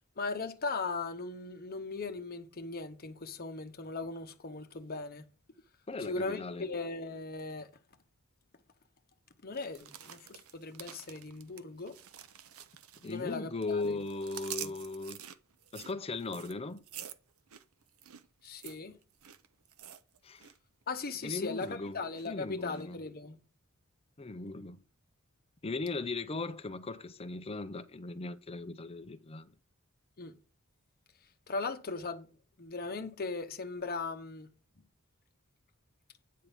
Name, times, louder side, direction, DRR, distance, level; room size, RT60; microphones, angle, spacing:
voice 1, 0.2-5.3 6.1-7.7 9.4-12.0 13.1-14.0 14.6-14.7 18.4-19.0 20.9-23.4 30.2-30.3 31.5-32.3 32.6-34.5, left 3 dB, 45° left, 0.9 m, -38 dB
voice 2, 5.9-6.7 13.0-15.2 15.7-16.8 20.2-20.5 21.2-22.0 22.3-23.0 24.2-24.8 25.6-29.5, left 3 dB, 25° left, 0.5 m, -38 dB
sound 1, 9.5-13.3 13.6-20.6 20.8-21.2 21.6-22.3 22.7-22.8, right 10 dB, 75° right, 0.7 m, -48 dB
9.3 x 3.7 x 7.0 m
head